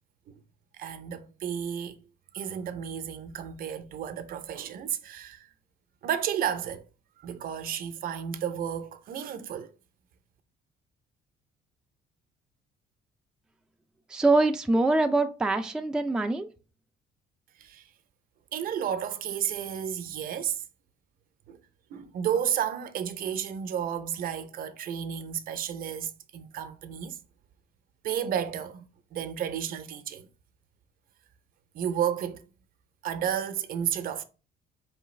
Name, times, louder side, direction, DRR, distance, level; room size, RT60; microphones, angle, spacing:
voice 1, 0.7-2.0 2.3-5.5 6.0-6.8 7.2-9.7 17.6-17.8 18.5-20.6 21.5-21.6 21.9-27.2 28.0-30.3 31.7-32.4 33.0-34.2, right 9 dB, 60° right, 0.6 m, -32 dB
voice 2, 14.1-16.5, right 2 dB, 5° right, 0.3 m, -24 dB
4.5 x 3.2 x 3.1 m
cardioid pair, 110°, 17 cm